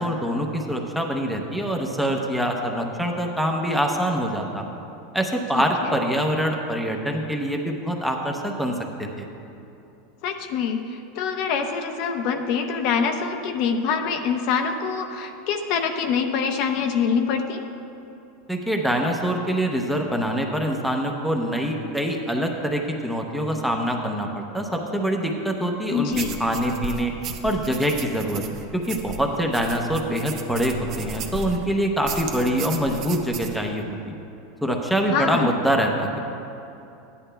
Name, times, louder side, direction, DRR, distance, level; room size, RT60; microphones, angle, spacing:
voice 1, 0.0-4.6 5.1-9.3 18.5-27.1 27.4-28.4 28.7-34.1 34.6-36.2, equal, ahead, 1 dB, 0.7 m, -25 dB
voice 2, 5.5-5.9 10.2-17.6 25.9-26.4 35.1-35.5, left 6 dB, 50° left, 5 dB, 0.7 m, -25 dB
sound 1, 26.1-31.6 32.0-33.6, right 4 dB, 40° right, 0.7 m, -35 dB
14.0 x 10.0 x 2.2 m, 2.8 s
supercardioid pair, 150°, 0 cm